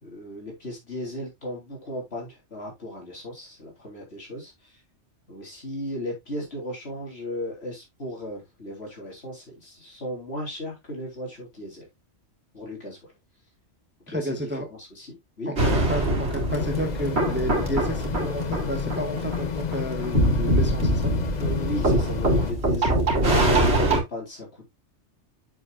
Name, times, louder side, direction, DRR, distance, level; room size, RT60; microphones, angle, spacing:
voice 1, 0.0-4.8 5.3-11.9 12.5-13.0 14.1-15.5 21.4-24.7, left 1 dB, 60° left, 4.1 m, -36 dB
voice 2, 14.1-14.7 15.5-21.1, right 1 dB, 10° right, 1.3 m, -31 dB
sound 1, 15.6-24.0, right 1 dB, 65° right, 2.8 m, -23 dB
sound 2, 16.5-22.5, left 7 dB, 45° left, 0.8 m, -31 dB
8.0 x 7.4 x 2.5 m
omnidirectional pair, 1.2 m